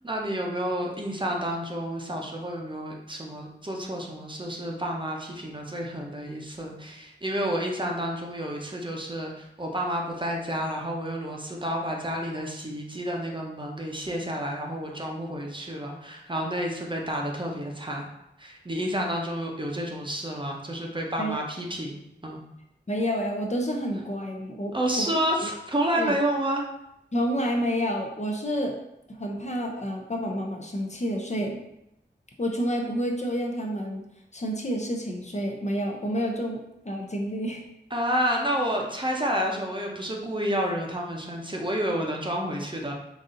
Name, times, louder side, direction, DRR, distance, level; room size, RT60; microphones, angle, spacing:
voice 1, 0.0-18.1 18.4-22.4 24.7-26.7 37.9-42.9, equal, 25° right, 0 dB, 0.7 m, -30 dB
voice 2, 22.9-25.1 25.4-25.5 26.0-26.1 27.1-28.7 29.1-31.6 32.4-34.0 34.3-37.6, equal, 40° left, 1 dB, 0.6 m, -29 dB
4.0 x 2.7 x 3.7 m, 0.83 s
wide cardioid pair, 70°, 18 cm